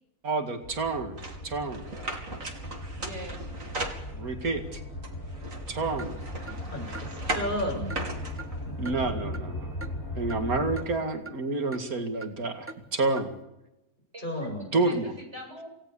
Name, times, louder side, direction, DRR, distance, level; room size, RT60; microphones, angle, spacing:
voice 1, 0.2-1.2 1.4-1.8 4.1-4.8 5.7-6.1 8.8-9.7 10.2-13.3 14.7-15.1, right 3 dB, 90° right, 5 dB, 2.6 m, -29 dB
sound 1, 0.6-10.8, left 1 dB, 75° left, 7.5 m, -38 dB
sound 2, 1.2-4.5 5.0-8.9, right 2 dB, 65° right, 3.5 m, -38 dB
voice 2, 3.0-3.5 14.1-15.7, equal, 50° right, 1 dB, 8.0 m, -42 dB
Clock, 6.0-6.1 6.5-6.6 6.9-7.1 7.4-7.5 7.9-8.0 8.4-8.5 8.8-9.0 9.3-9.5 9.8-9.9 10.3-10.4 10.8-10.9 11.3-11.4 11.7-11.8 12.2-12.3 12.7-12.8 13.2-13.3, right 3 dB, 10° right, 1.3 m, -41 dB
voice 3, 6.7-7.9 8.7-8.8 14.2-14.6, left 1 dB, 35° left, 1 dB, 7.9 m, -33 dB
28.0 x 18.0 x 7.1 m, 0.91 s
omnidirectional pair, 1.5 m